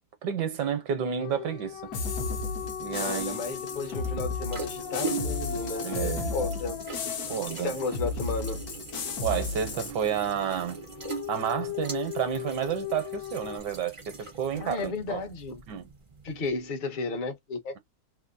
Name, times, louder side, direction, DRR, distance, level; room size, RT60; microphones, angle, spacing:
voice 1, 0.2-1.9 2.8-3.4 5.8-6.3 7.3-7.8 9.2-10.8 11.3-15.2 15.7-15.9, right 8 dB, 70° right, 1.4 m, -30 dB
sound 1, 1.2-8.1 10.8-13.6, left 10 dB, 85° left, 1.4 m, -38 dB
sound 2, 1.6-16.7, right 4 dB, 40° right, 0.4 m, -42 dB
sound 3, 1.9-9.9, left 4 dB, 60° left, 1.3 m, -34 dB
voice 2, 3.0-6.8 7.5-8.6 14.5-15.6 16.2-17.8, left 3 dB, 35° left, 0.8 m, -33 dB
3.5 x 2.8 x 2.6 m
omnidirectional pair, 2.0 m